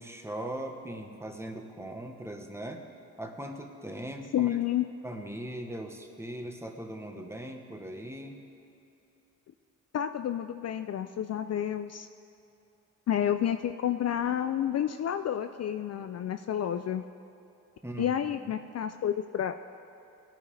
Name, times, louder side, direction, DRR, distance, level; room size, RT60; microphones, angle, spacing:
voice 1, 0.0-2.9 3.2-4.6 5.0-8.4 17.8-18.3, right 1 dB, 10° right, 3 dB, 1.2 m, -39 dB
voice 2, 4.3-4.9 9.9-12.1 13.1-17.0 18.0-19.5, left 10 dB, 50° left, 8 dB, 0.5 m, -30 dB
18.0 x 9.0 x 3.4 m, 2.8 s
cardioid pair, 80°, 33 cm